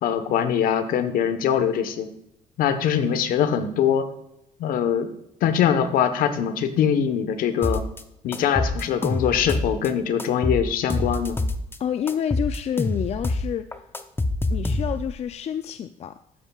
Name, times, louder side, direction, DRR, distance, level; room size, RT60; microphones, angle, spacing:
voice 1, 0.0-2.1 2.6-4.1 4.6-5.1 5.4-7.8 8.2-11.4, left 8 dB, 70° left, 10 dB, 1.2 m, -22 dB
sound 1, 7.6-8.0 8.3-9.9 10.2-11.8 12.1-15.2, left 2 dB, 15° left, 0.8 m, -26 dB
voice 2, 11.8-13.7 14.5-16.2, left 9 dB, 45° left, 10 dB, 0.5 m, -28 dB
13.0 x 10.0 x 2.4 m, 0.82 s
cardioid pair, 105°, 15 cm